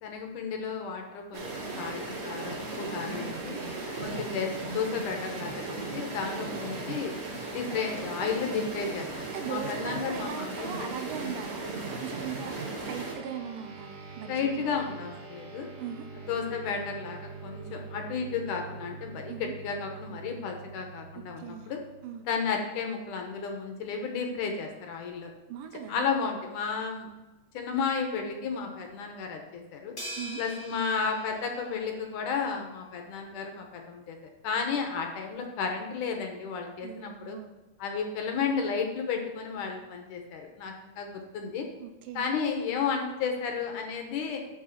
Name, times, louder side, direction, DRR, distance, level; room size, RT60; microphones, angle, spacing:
voice 1, 0.0-3.6 4.0-7.1 7.5-9.1 9.5-11.0 14.3-15.7 16.2-21.8 22.2-25.3 25.9-27.1 27.5-29.9 30.4-34.2 34.4-37.4 37.8-41.7 42.2-44.4, left 5 dB, 70° left, 3 dB, 2.4 m, -33 dB
sound 1, 1.3-13.1, right 3 dB, 40° right, 2.9 m, -36 dB
voice 2, 9.3-14.7 15.8-16.1 19.3-19.5 21.1-21.7 22.0-22.2 25.5-26.1 30.2-30.4 36.8-37.5 41.8-42.3, right 8 dB, 80° right, 6 dB, 2.3 m, -39 dB
sound 2, 12.8-22.5, right 4 dB, 60° right, 2.8 m, -45 dB
sound 3, 30.0-32.5, equal, 20° left, 2.0 m, -43 dB
7.3 x 6.0 x 5.8 m, 1.1 s
omnidirectional pair, 4.0 m